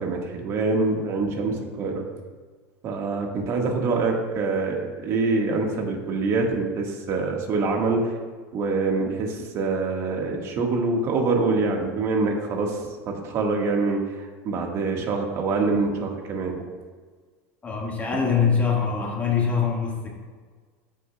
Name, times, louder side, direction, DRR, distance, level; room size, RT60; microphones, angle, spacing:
voice 1, 0.0-2.0 2.8-8.1 8.5-16.6, right 3 dB, 45° right, 1 dB, 1.6 m, -25 dB
voice 2, 17.6-20.1, left 6 dB, 20° left, -1 dB, 1.7 m, -23 dB
14.5 x 6.6 x 2.3 m, 1.5 s
supercardioid pair, 135°, 7 cm